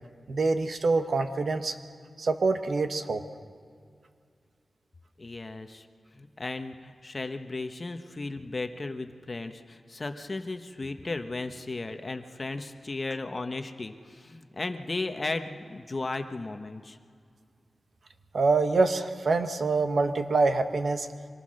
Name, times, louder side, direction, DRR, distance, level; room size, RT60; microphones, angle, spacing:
voice 1, 0.3-1.8 2.2-3.2 18.3-21.1, right 3 dB, 65° right, 8 dB, 1.1 m, -25 dB
voice 2, 5.2-5.9 6.1-17.0, left 3 dB, 35° left, 7 dB, 1.0 m, -35 dB
24.5 x 19.0 x 6.4 m, 2.3 s
wide cardioid pair, 110°, 0 cm